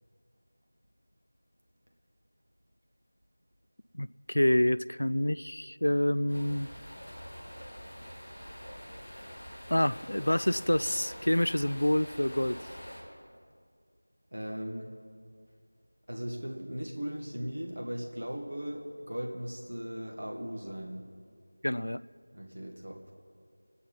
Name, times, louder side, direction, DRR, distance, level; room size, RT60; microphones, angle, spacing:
voice 1, 3.9-6.7 9.7-12.6 21.6-22.0, left 1 dB, 80° left, 16 dB, 0.4 m, -27 dB
sound 1, 6.3-13.0, equal, 15° left, 4.4 m, -45 dB
voice 2, 14.3-14.9 16.1-21.0 22.3-23.0, equal, 65° right, 0 dB, 1.9 m, -38 dB
25.5 x 9.4 x 5.4 m, 2.2 s
figure-of-eight pair, 180°, 0 cm